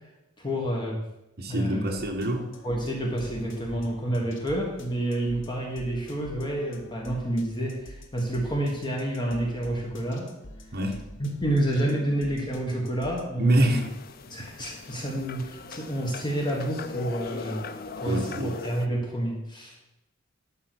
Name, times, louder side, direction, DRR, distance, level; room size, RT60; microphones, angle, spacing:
voice 1, 0.4-1.0 1.4-2.0 2.6-10.3 11.2-13.8 14.3-17.6 18.0-19.7, right 1 dB, 20° left, -1 dB, 1.5 m, -29 dB
voice 2, 1.4-2.5 10.7-11.0 13.4-13.9 14.6-14.7 18.0-18.6, right 1 dB, 50° right, 1 dB, 1.2 m, -27 dB
sound 1, 2.0-13.3, left 1 dB, 65° left, 1.0 m, -47 dB
sound 2, 13.6-18.9, left 4 dB, 45° left, 0.5 m, -40 dB
11.5 x 4.0 x 6.3 m, 0.91 s
head